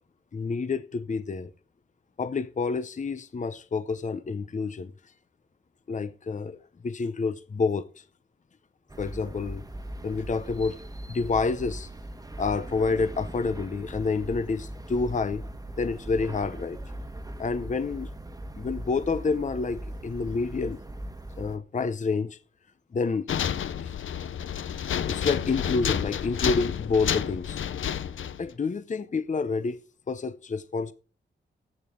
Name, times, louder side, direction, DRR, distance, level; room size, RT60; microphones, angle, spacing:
voice 1, 0.3-1.5 2.2-4.9 5.9-6.6 6.8-8.0 9.0-9.6 10.0-10.8 11.1-11.9 12.4-15.4 15.8-16.8 17.4-18.1 18.6-20.8 21.4-22.4 22.9-23.3 23.8-23.9 25.1-27.6 28.4-29.8 30.1-30.9, left 4 dB, 40° left, 0.7 m, -28 dB
sound 1, 8.9-21.6, right 1 dB, 20° right, 1.3 m, -39 dB
sound 2, 23.3-28.5, left 9 dB, 85° left, 0.7 m, -30 dB
15.5 x 9.0 x 3.7 m
cardioid pair, 75°, 20 cm